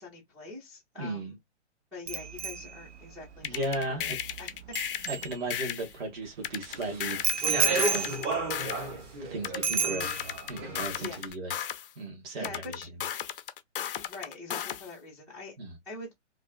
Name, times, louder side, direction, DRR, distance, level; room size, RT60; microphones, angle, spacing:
voice 1, 0.0-1.4 1.9-4.1 4.4-4.5 11.0-11.2 12.3-12.9 13.9-15.5 15.9-16.1, left 3 dB, 5° right, 0.5 m, -44 dB
voice 2, 1.0-1.4 3.4-4.2 5.1-7.2 7.5-8.1 9.3-10.1 10.5-11.5 12.0-12.8 15.6-15.7, right 2 dB, 55° right, 1.5 m, -35 dB
Bicycle bell, 2.1-5.9 7.2-9.3 9.6-10.5 10.8-11.1, right 6 dB, 70° right, 0.8 m, -33 dB
sound 1, 3.4-5.9 6.4-8.9 9.4-11.9 12.4-14.9, left 10 dB, 50° left, 0.5 m, -35 dB
Speech, 6.7-11.1, right 3 dB, 25° right, 0.8 m, -34 dB
3.3 x 2.4 x 2.4 m
hypercardioid pair, 150°, 36 cm